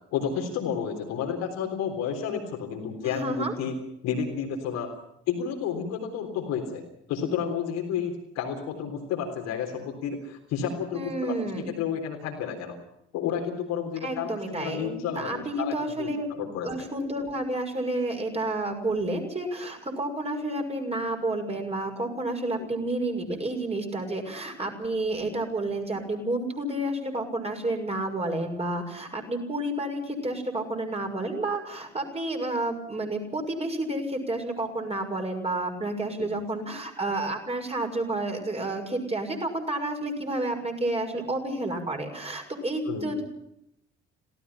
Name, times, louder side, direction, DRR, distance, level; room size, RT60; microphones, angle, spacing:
voice 1, 0.1-3.7 4.0-4.9 5.3-6.8 7.1-12.8 13.1-16.7 22.5-22.7 36.2-36.3 42.9-43.1, left 7 dB, 55° left, 2 dB, 3.7 m, -31 dB
voice 2, 3.0-3.5 10.9-11.7 14.0-16.3 16.6-43.2, right 2 dB, 20° right, 3 dB, 6.4 m, -30 dB
27.5 x 18.0 x 5.8 m, 0.80 s
figure-of-eight pair, 50°, 32 cm